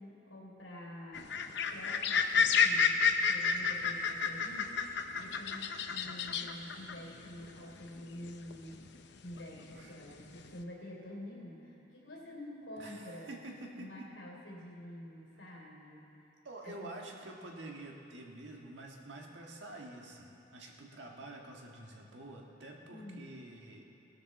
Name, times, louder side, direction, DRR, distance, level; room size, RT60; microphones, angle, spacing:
voice 1, 0.0-4.7 5.2-8.9 9.2-13.3 13.8-16.1 16.6-16.9 22.8-23.3, left 1 dB, 85° left, -2 dB, 3.2 m, -48 dB
sound 1, 1.1-9.0 9.3-10.5, left 6 dB, 60° left, 0.7 m, -31 dB
voice 2, 12.8-14.1 16.4-23.9, right 2 dB, 65° right, 0 dB, 1.6 m, -48 dB
18.5 x 12.5 x 4.2 m, 2.8 s
head